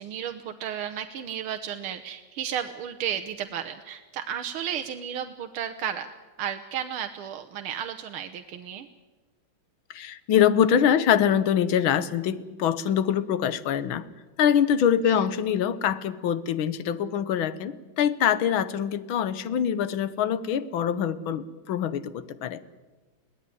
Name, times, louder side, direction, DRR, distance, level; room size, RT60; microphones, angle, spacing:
voice 1, 0.0-6.1 6.4-8.9 15.1-15.3, right 9 dB, 85° right, 7 dB, 1.8 m, -33 dB
voice 2, 9.9-14.0 14.4-22.6, left 9 dB, 75° left, 15 dB, 1.8 m, -24 dB
22.0 x 17.0 x 9.8 m, 1.2 s
omnidirectional pair, 2.3 m